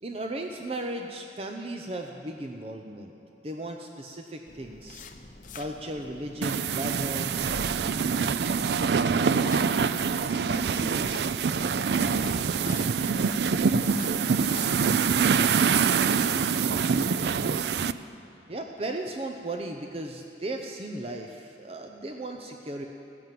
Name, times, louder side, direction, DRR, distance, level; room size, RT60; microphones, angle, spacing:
voice 1, 0.0-3.1 3.4-5.1 5.5-7.4 16.7-16.8 18.5-22.9, right 1 dB, 35° right, 3 dB, 0.7 m, -36 dB
sound 1, 4.5-15.3, left 2 dB, 45° left, 0.8 m, -46 dB
sound 2, 6.4-17.9, right 6 dB, 70° right, 0.4 m, -25 dB
voice 2, 8.9-18.0 21.7-21.8, left 1 dB, 20° left, -6 dB, 4.3 m, -44 dB
16.5 x 11.0 x 7.6 m, 2.5 s
head